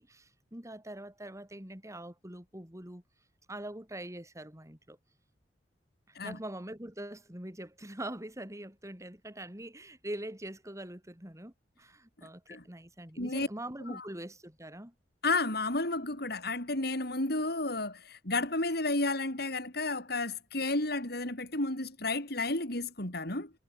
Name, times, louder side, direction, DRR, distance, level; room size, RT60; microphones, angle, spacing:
voice 1, 0.0-3.0 3.5-5.0 6.1-14.9, right 1 dB, 20° right, 4.6 m, -43 dB
voice 2, 13.2-13.5 13.9-14.0 15.2-23.5, left 2 dB, 65° left, 6.0 m, -32 dB
head